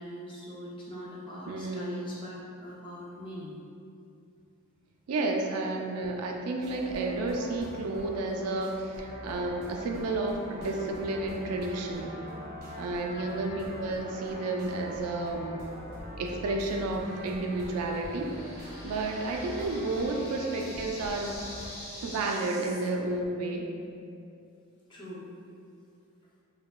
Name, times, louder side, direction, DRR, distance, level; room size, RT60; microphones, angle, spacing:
voice 1, 0.0-3.6 13.1-13.3 20.2-20.3 24.9-25.3, equal, 20° left, -6 dB, 0.4 m, -43 dB
voice 2, 1.5-2.1 5.1-12.2 12.8-15.6 16.2-18.3 18.8-21.3 22.0-23.7, right 2 dB, 80° right, 2 dB, 0.3 m, -31 dB
sound 1, 6.6-21.7, equal, 40° right, 0.7 m, -43 dB
sound 2, 17.0-22.9, left 1 dB, 70° left, 0.7 m, -46 dB
2.8 x 2.1 x 2.2 m, 2.5 s
head